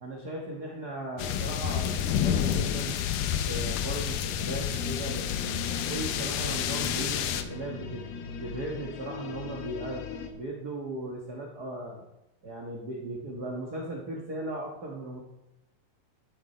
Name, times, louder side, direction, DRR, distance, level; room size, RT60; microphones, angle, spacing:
voice 1, 0.0-3.0 3.5-5.5 5.9-10.0 10.3-12.0 12.4-15.2, right 2 dB, 50° right, -1 dB, 1.1 m, -37 dB
sound 1, 1.2-7.4, left 9 dB, 75° left, 2.1 m, -29 dB
sound 2, 4.8-10.3, left 5 dB, 90° left, 3.1 m, -39 dB
12.5 x 9.6 x 4.4 m, 0.90 s
omnidirectional pair, 4.1 m